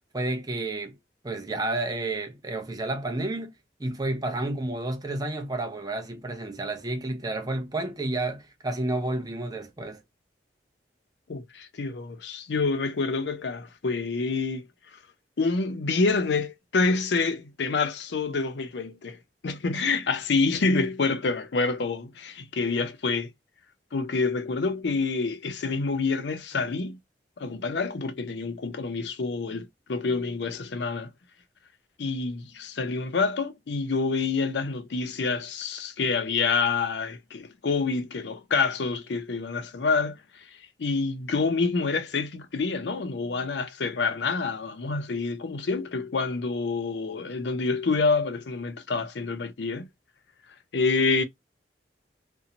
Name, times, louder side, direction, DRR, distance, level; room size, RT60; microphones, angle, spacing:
voice 1, 0.1-0.9 1.2-3.5 3.8-10.0, right 2 dB, 20° right, 0.6 m, -30 dB
voice 2, 11.3-14.6 15.4-19.2 19.4-23.3 23.9-27.0 27.4-31.1 32.0-40.5 40.8-49.9 50.7-51.2, left 4 dB, 70° left, 0.5 m, -27 dB
2.6 x 2.1 x 2.7 m
head